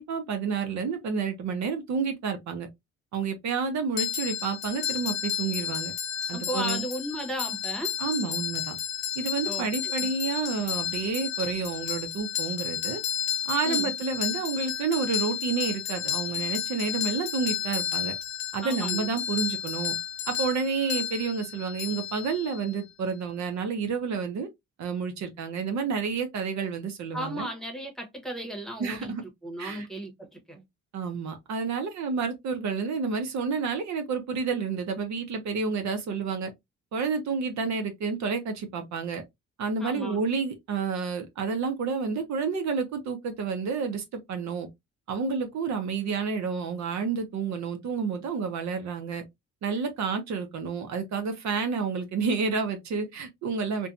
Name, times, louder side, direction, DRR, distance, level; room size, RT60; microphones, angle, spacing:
voice 1, 0.0-2.7 3.1-5.9 6.3-6.8 8.0-8.8 9.2-13.0 13.5-18.1 18.5-19.9 20.3-24.5 24.8-27.5 28.8-29.2 29.6-29.9 30.9-36.5 36.9-39.2 39.6-44.7 45.1-49.2 49.6-53.9, right 5 dB, 65° right, 0.7 m, -30 dB
sound 1, 4.0-22.7, left 10 dB, 70° left, 0.8 m, -32 dB
voice 2, 6.3-8.0 9.4-10.1 13.6-13.9 18.6-19.1 27.1-29.1 29.4-30.6 39.8-40.2, right 1 dB, ahead, 1.0 m, -35 dB
2.6 x 2.2 x 2.4 m
cardioid pair, 90°, 30 cm